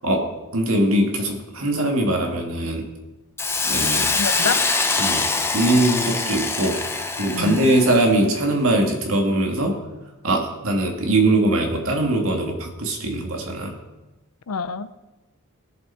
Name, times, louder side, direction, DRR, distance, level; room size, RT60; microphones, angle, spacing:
voice 1, 0.0-2.9 3.6-4.1 4.4-4.5 5.0-5.3 5.5-6.9 7.1-9.8 10.2-13.8, right 1 dB, 65° right, 2 dB, 2.1 m, -21 dB
Hiss, 3.4-8.1, left 3 dB, 10° left, 0.7 m, -24 dB
voice 2, 4.1-4.6 7.3-7.6 14.5-14.9, left 5 dB, 90° left, 14 dB, 0.6 m, -26 dB
19.0 x 7.0 x 4.4 m, 1.1 s
head